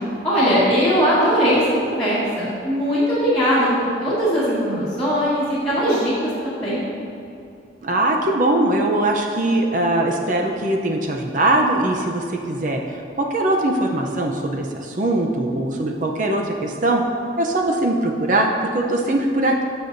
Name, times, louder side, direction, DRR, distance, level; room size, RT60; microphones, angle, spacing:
voice 1, 0.2-3.7 4.0-6.1 6.4-6.8, equal, 5° left, -14 dB, 1.7 m, -19 dB
voice 2, 7.8-17.0 17.4-19.6, right 1 dB, 45° right, 1 dB, 0.6 m, -21 dB
12.0 x 6.9 x 2.6 m, 2.6 s
head